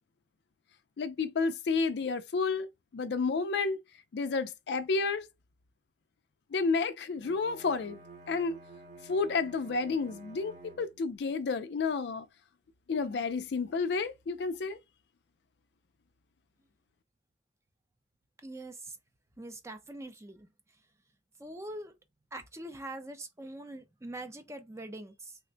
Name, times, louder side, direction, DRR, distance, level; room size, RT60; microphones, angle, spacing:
voice 1, 1.0-2.7 2.9-3.8 4.1-5.3 6.5-8.0 8.3-8.6 9.0-12.3 12.9-14.8, left 4 dB, 60° left, 0.4 m, -31 dB
Bowed string instrument, 7.2-11.2, right 3 dB, 40° right, 0.8 m, -51 dB
voice 2, 18.4-18.9 19.4-20.5 21.4-21.9 22.3-25.4, right 1 dB, 15° right, 0.4 m, -43 dB
3.3 x 2.1 x 3.8 m
head